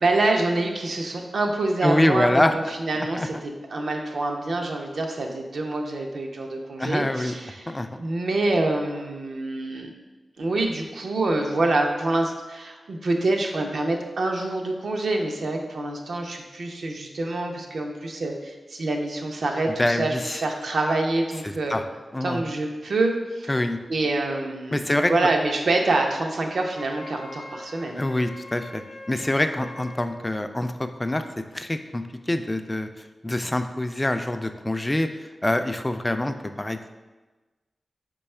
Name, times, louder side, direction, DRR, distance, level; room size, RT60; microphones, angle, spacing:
voice 1, 0.0-9.9 10.4-20.1 20.4-21.8 22.2-23.5 23.9-28.0, right 2 dB, 80° right, 2 dB, 0.5 m, -26 dB
voice 2, 1.8-2.5 3.0-3.3 6.8-7.3 7.7-8.0 19.8-20.4 21.4-21.8 22.1-22.4 23.5-23.8 24.7-25.1 28.0-28.8 29.1-31.2 31.5-36.9, left 1 dB, 25° left, 8 dB, 0.3 m, -25 dB
Wind instrument woodwind instrument, 26.7-30.1, left 1 dB, 85° left, 0.6 m, -42 dB
4.6 x 2.3 x 4.2 m, 1.2 s
cardioid pair, 45°, 0 cm